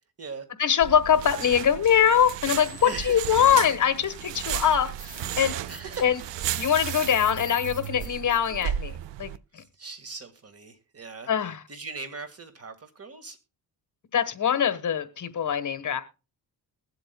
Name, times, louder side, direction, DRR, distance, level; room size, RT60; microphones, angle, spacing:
voice 1, 0.6-4.9 5.4-5.6 6.0-6.2 6.5-9.6 11.3-11.6 14.1-16.0, left 8 dB, 45° left, 1.3 m, -23 dB
sound 1, 0.8-9.4, right 10 dB, 85° right, 0.6 m, -34 dB
sound 2, 2.6-3.4 4.0-4.1 4.4-8.6, right 1 dB, 20° right, 1.5 m, -43 dB
voice 2, 2.8-3.3 5.7-6.1 9.5-11.3 11.7-13.4, right 4 dB, 35° right, 1.8 m, -39 dB
21.5 x 7.8 x 2.2 m
cardioid pair, 100°, 42 cm